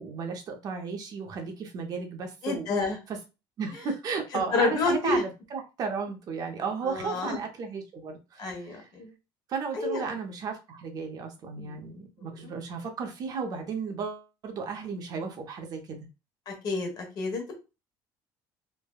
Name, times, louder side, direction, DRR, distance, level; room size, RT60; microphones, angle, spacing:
voice 1, 0.0-2.7 3.6-8.8 9.5-16.1, right 5 dB, 45° right, 4 dB, 0.6 m, -34 dB
voice 2, 2.4-3.0 4.3-5.2 6.8-7.4 8.4-9.1 9.7-10.1 11.6-11.9 12.2-12.5 16.5-17.5, left 3 dB, 50° left, 2 dB, 1.0 m, -29 dB
3.3 x 2.1 x 2.2 m, 0.28 s
cardioid pair, 135°, 9 cm